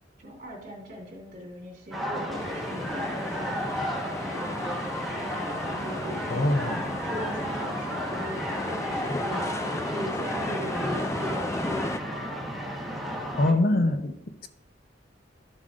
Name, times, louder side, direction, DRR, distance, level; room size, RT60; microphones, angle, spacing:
voice 1, 0.2-3.5 4.2-6.3 7.0-12.3, equal, 50° right, -1 dB, 2.9 m, -40 dB
sound 1, 1.9-13.5, equal, ahead, 1.3 m, -33 dB
sound 2, 2.3-12.0, left 2 dB, 15° left, 0.3 m, -35 dB
voice 2, 6.3-7.0 13.4-14.5, left 1 dB, 55° left, 8 dB, 0.7 m, -24 dB
12.5 x 7.4 x 2.5 m, 0.85 s
head